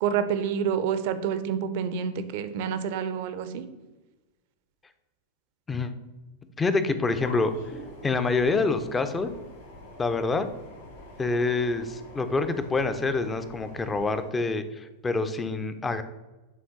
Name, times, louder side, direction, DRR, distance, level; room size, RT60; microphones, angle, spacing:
voice 1, 0.0-3.7, right 7 dB, 50° right, 11 dB, 0.5 m, -28 dB
voice 2, 6.6-7.5 8.0-9.3 10.0-10.5 11.2-16.0, left 3 dB, 15° left, 10 dB, 0.5 m, -26 dB
sound 1, 7.1-14.3, left 1 dB, 60° left, 2.3 m, -46 dB
8.3 x 3.6 x 3.8 m, 1.1 s
figure-of-eight pair, 90°, 0 cm